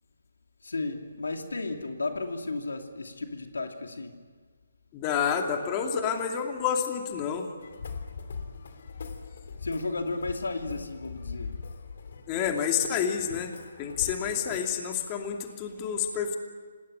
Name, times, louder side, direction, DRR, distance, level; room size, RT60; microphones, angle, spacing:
voice 1, 0.6-4.1 9.6-11.5, left 3 dB, 80° left, 4 dB, 2.7 m, -33 dB
voice 2, 4.9-7.5 12.3-13.5 13.8-16.4, left 7 dB, 25° left, 3 dB, 2.6 m, -29 dB
sound 1, 7.6-14.7, left 5 dB, 60° left, 3.0 m, -41 dB
27.5 x 20.0 x 9.0 m, 1.5 s
figure-of-eight pair, 145°, 0 cm